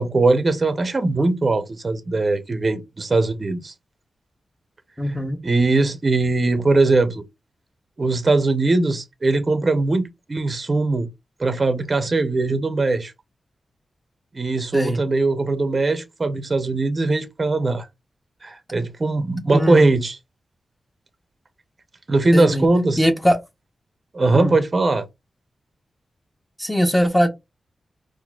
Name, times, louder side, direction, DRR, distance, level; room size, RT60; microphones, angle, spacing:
voice 1, 0.0-3.7 5.4-7.2 8.0-11.1 11.4-13.1 14.3-17.9 18.4-20.2 22.1-23.0 24.1-25.0, right 3 dB, 35° right, 0.5 m, -20 dB
voice 2, 5.0-5.4 14.7-15.0 19.5-19.9 22.3-22.7 23.0-23.4 24.3-24.6 26.6-27.3, equal, 5° left, 0.7 m, -20 dB
3.9 x 2.5 x 2.3 m
wide cardioid pair, 105°, 0 cm